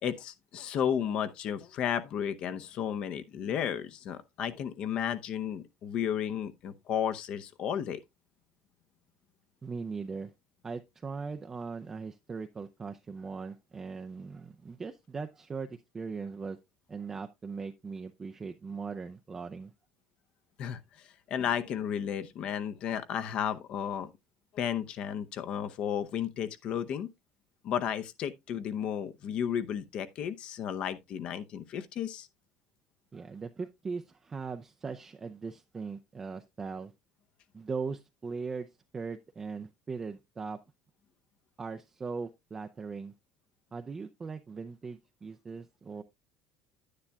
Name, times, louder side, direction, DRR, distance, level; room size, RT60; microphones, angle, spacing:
voice 1, 0.0-8.0 20.6-24.1 24.5-27.1 27.6-32.3, left 9 dB, 45° left, 0.7 m, -33 dB
voice 2, 9.6-10.3 10.6-16.6 16.9-19.7 33.1-36.9 37.5-40.6 41.6-43.1 43.7-46.0, right 5 dB, 20° right, 0.4 m, -39 dB
10.0 x 9.7 x 2.3 m
cardioid pair, 155°, 2 cm